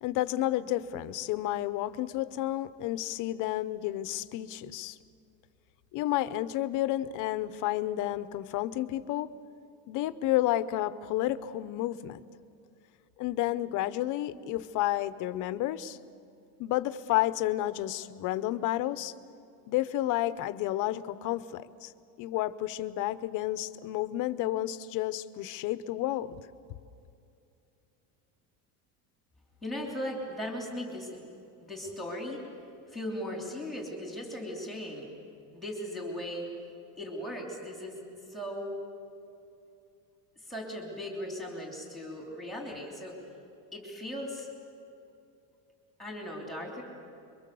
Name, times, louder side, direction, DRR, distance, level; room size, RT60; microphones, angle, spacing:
voice 1, 0.0-5.0 5.9-9.3 9.9-12.2 13.2-16.0 16.6-19.1 19.7-21.9 22.2-26.4, left 14 dB, 45° left, 14 dB, 0.8 m, -31 dB
voice 2, 29.6-31.2 31.6-32.4 32.9-35.1 35.5-36.5 37.0-38.0 38.3-38.8 40.4-43.2 43.7-44.5 46.0-46.8, left 1 dB, ahead, 0 dB, 3.1 m, -38 dB
27.0 x 23.5 x 7.0 m, 2.6 s
cardioid pair, 175°, 42 cm